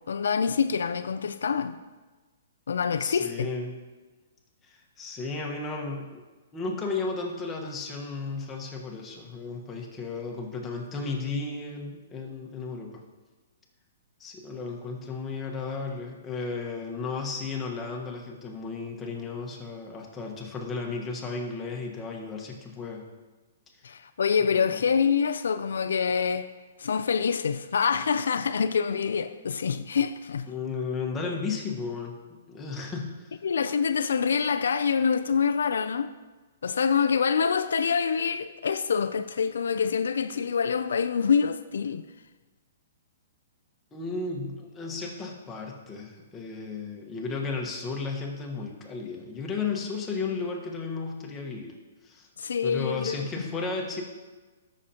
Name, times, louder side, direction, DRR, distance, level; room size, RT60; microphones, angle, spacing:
voice 1, 0.1-1.8 2.7-3.5 23.8-26.5 26.8-30.5 33.4-36.1 36.6-42.0 52.4-53.3, left 6 dB, 85° left, 0.3 m, -26 dB
voice 2, 2.9-3.7 4.6-6.2 6.5-13.0 14.2-23.1 24.5-24.8 30.5-33.4 43.9-51.8 52.0-52.3 52.6-54.0, left 4 dB, 15° left, 1.3 m, -34 dB
13.5 x 6.4 x 2.9 m
hypercardioid pair, 145°, 0 cm